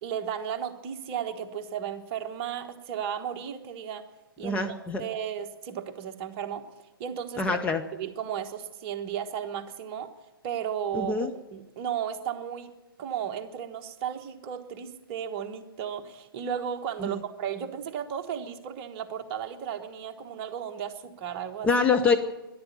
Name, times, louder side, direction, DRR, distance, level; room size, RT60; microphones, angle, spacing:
voice 1, 0.0-4.0 4.4-4.6 5.0-6.6 7.0-7.7 7.9-10.1 10.4-12.7 13.0-21.7, right 8 dB, 30° right, 6 dB, 1.2 m, -34 dB
voice 2, 4.4-5.0 7.4-7.8 10.9-11.3 17.0-17.2 21.6-22.2, left 4 dB, 10° left, 4 dB, 0.6 m, -25 dB
13.0 x 11.0 x 10.0 m, 1.0 s
figure-of-eight pair, 125°, 12 cm